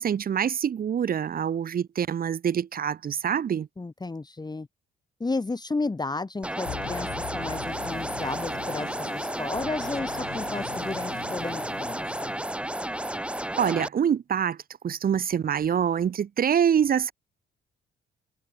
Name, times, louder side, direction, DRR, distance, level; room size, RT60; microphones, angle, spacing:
voice 1, 0.0-3.7 13.5-14.6 14.8-17.1, right 8 dB, 45° right, 1.2 m, -25 dB
voice 2, 3.8-4.7 5.2-12.4, left 3 dB, 20° left, 3.0 m, -33 dB
sound 1, 6.4-13.9, right 1 dB, 5° right, 2.3 m, -32 dB
sound 2, 6.7-12.8, left 13 dB, 80° left, 5.0 m, -42 dB
cardioid pair, 90°, 20 cm